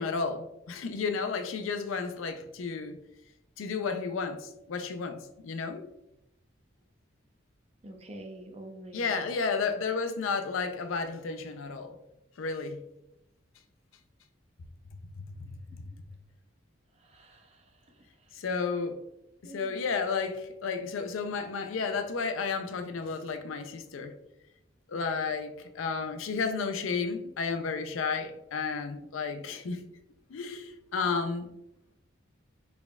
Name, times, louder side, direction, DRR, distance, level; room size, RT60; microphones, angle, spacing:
voice 1, 0.0-3.0 3.6-5.9 8.9-12.0 12.4-12.8 15.4-15.5 18.3-19.0 19.4-24.1 24.9-29.8 30.3-31.5, left 5 dB, 85° left, 0.4 m, -32 dB
voice 2, 7.8-9.3 17.1-17.5 19.4-19.8, right 1 dB, 30° right, 0.6 m, -46 dB
4.2 x 3.4 x 2.3 m
head